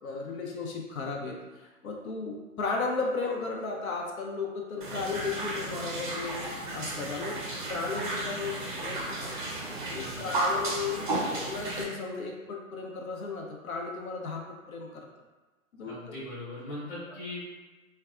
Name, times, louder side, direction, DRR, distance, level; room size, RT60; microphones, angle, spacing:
voice 1, 0.0-7.4 7.7-9.3 9.9-15.1 15.7-16.0, left 4 dB, 75° left, -1 dB, 0.6 m, -35 dB
sound 1, 4.8-11.8, right 2 dB, 40° right, 0.4 m, -33 dB
voice 2, 9.9-10.4 15.8-17.4, left 2 dB, 15° left, -11 dB, 0.8 m, -40 dB
2.6 x 2.2 x 2.3 m, 1.2 s
hypercardioid pair, 145°, 42 cm